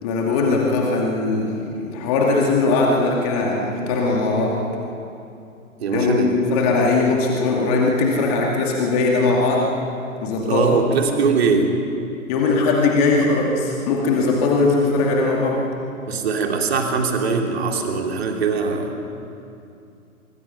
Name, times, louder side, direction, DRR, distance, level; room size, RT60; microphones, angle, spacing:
voice 1, 0.0-4.6 5.9-9.7 10.2-10.9 12.3-15.6, left 3 dB, 25° left, -1 dB, 2.4 m, -20 dB
voice 2, 5.8-6.4 6.8-6.9 10.4-11.7 16.1-18.9, right 4 dB, 45° right, 2 dB, 3.1 m, -21 dB
25.0 x 24.0 x 5.6 m, 2.6 s
figure-of-eight pair, 130°, 43 cm